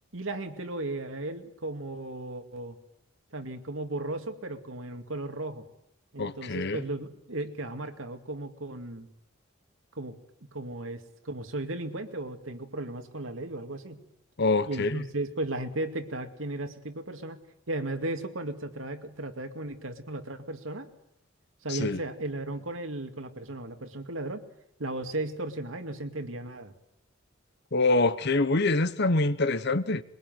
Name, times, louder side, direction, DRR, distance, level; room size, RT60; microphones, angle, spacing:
voice 1, 0.1-2.8 3.3-5.6 6.1-9.1 9.9-14.0 14.7-17.4 17.7-20.9 21.6-24.4 24.8-26.7, right 2 dB, 90° right, 2.4 m, -35 dB
voice 2, 6.2-6.8 14.4-15.0 21.7-22.0 27.7-30.0, left 2 dB, 55° left, 1.1 m, -25 dB
22.5 x 22.0 x 9.2 m
head